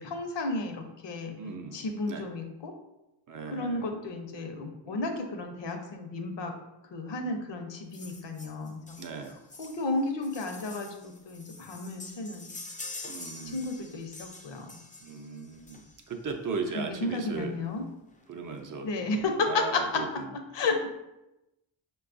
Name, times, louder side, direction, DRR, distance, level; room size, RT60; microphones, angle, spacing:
voice 1, 0.0-1.3 1.7-2.7 3.5-6.5 6.9-9.0 9.6-12.5 13.5-14.8 16.8-17.8 18.8-20.0 20.5-20.9, left 3 dB, 65° left, 4 dB, 0.7 m, -32 dB
voice 2, 1.4-1.8 2.1-2.3 3.3-3.9 4.9-5.1 9.0-9.4 13.1-13.7 15.0-17.6 18.3-20.9, right 4 dB, 45° right, 4 dB, 0.5 m, -38 dB
sound 1, 7.9-16.2 17.3-17.4 17.8-17.9 18.1-18.2 18.6-19.2 19.7-19.8, left 3 dB, 20° left, 0.4 m, -46 dB
5.1 x 2.3 x 2.5 m, 0.94 s
cardioid pair, 85°, 48 cm